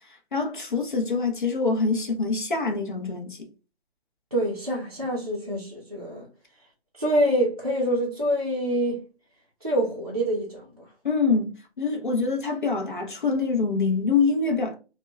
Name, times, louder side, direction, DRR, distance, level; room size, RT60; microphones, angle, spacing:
voice 1, 0.3-3.5 11.0-14.8, left 4 dB, 50° left, 0.6 m, -25 dB
voice 2, 4.3-6.3 7.0-9.0 9.6-10.9, right 1 dB, 35° right, 0.4 m, -26 dB
2.8 x 2.1 x 2.2 m
hypercardioid pair, 180°, 33 cm